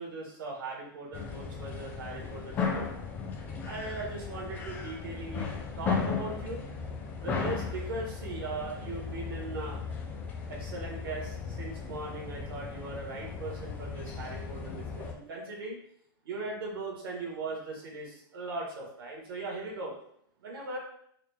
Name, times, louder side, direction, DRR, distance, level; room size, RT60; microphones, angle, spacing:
voice 1, 0.0-2.9 3.6-5.5 5.8-6.7 7.2-9.8 10.5-15.7 16.2-19.9 20.4-20.8, right 3 dB, 75° right, -2 dB, 1.3 m, -39 dB
sound 1, 1.1-15.1, left 5 dB, 15° left, 0.3 m, -36 dB
3.9 x 2.0 x 3.3 m, 0.68 s
supercardioid pair, 165°, 12 cm